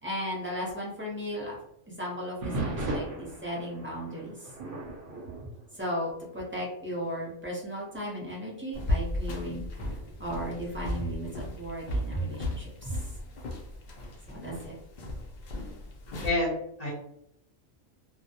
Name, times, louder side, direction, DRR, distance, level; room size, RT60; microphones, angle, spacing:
voice 1, 0.0-1.6 1.9-4.5 5.7-13.1 14.3-14.7, equal, 15° right, -5 dB, 0.5 m, -36 dB
sound 1, 2.4-6.5 6.9-7.2 7.8-7.9 8.7-11.4 13.2-13.7, right 2 dB, 50° right, 0.7 m, -39 dB
sound 2, 8.7-16.3, left 1 dB, 80° left, 0.4 m, -35 dB
voice 2, 16.2-16.9, left 2 dB, 40° left, -7 dB, 0.7 m, -28 dB
2.2 x 2.1 x 2.8 m, 0.76 s
omnidirectional pair, 1.3 m